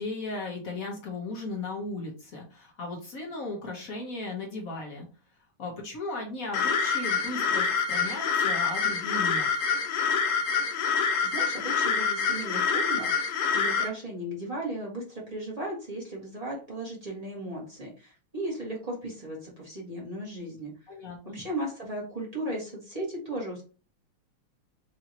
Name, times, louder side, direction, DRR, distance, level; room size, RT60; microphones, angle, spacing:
voice 1, 0.0-5.1 5.6-9.5 20.9-21.4, left 2 dB, 50° left, 0 dB, 1.1 m, -36 dB
sound 1, 6.5-13.9, left 5 dB, 80° left, 1.5 m, -26 dB
voice 2, 11.2-20.7 21.2-23.7, right 1 dB, 20° right, -4 dB, 1.3 m, -36 dB
4.8 x 2.8 x 2.9 m, 0.35 s
omnidirectional pair, 2.4 m